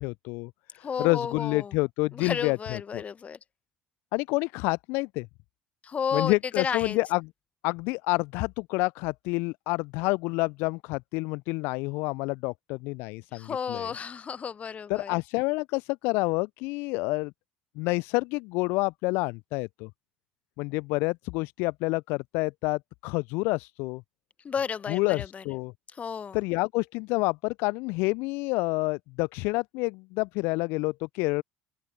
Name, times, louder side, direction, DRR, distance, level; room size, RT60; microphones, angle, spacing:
voice 1, 0.0-3.0 4.1-5.3 6.1-7.3 7.6-13.9 14.9-17.3 17.8-19.9 20.6-24.0 24.9-25.7 26.3-31.4, left 26 dB, 60° left, 0.3 m, -28 dB
voice 2, 0.8-1.7 2.1-3.4 5.8-7.0 13.3-15.1 24.4-25.4 26.0-26.4, left 6 dB, 35° left, 1.1 m, -32 dB
open air
figure-of-eight pair, 60°, 4 cm